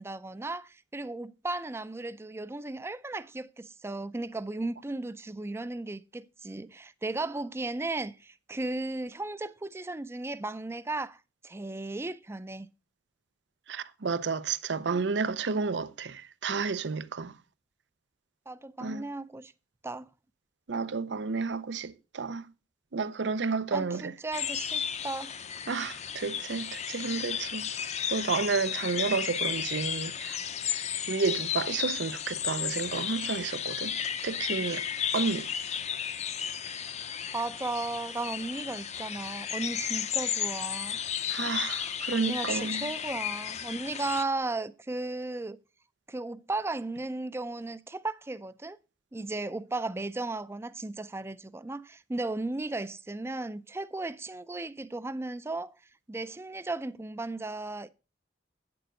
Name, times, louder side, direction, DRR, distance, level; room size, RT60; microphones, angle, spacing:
voice 1, 0.0-12.7 18.5-19.5 19.8-20.1 23.7-25.3 37.3-41.0 42.1-45.6 46.1-48.8 49.1-55.7 56.1-57.9, right 2 dB, 15° right, 0.4 m, -35 dB
voice 2, 13.7-17.4 18.8-19.0 20.7-22.5 22.9-24.1 25.7-27.7 28.1-30.4 31.1-34.9 35.1-35.5 41.3-42.9, right 4 dB, 80° right, 0.6 m, -31 dB
sound 1, 24.3-44.2, left 8 dB, 40° left, 0.6 m, -34 dB
9.0 x 6.9 x 5.2 m
head